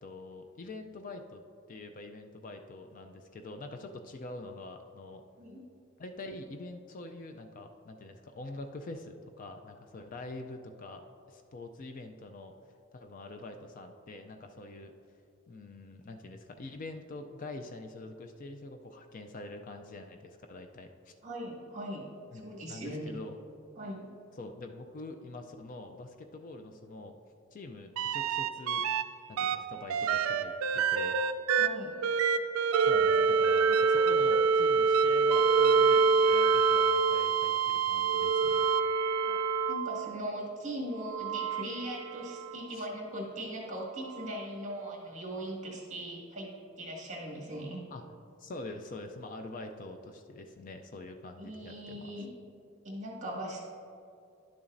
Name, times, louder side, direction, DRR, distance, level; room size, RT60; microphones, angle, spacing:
voice 1, 0.0-1.4 1.7-5.2 6.0-11.0 11.3-12.5 12.9-14.9 15.5-21.1 22.3-23.4 24.3-27.1 27.5-28.8 29.3-31.2 32.8-38.6 42.7-42.9 47.9-48.0 48.4-52.1, left 2 dB, 40° left, 6 dB, 0.4 m, -45 dB
voice 2, 21.2-22.1 22.3-23.1 23.8-24.1 31.6-32.0 39.2-39.4 39.7-47.9 51.4-52.3 52.8-53.7, right 1 dB, 35° right, -3 dB, 1.8 m, -40 dB
sound 1, 28.0-29.0 29.4-40.1 41.0-42.6 44.3-44.4, right 5 dB, 85° right, 0.4 m, -26 dB
11.0 x 6.9 x 2.6 m, 2.6 s
head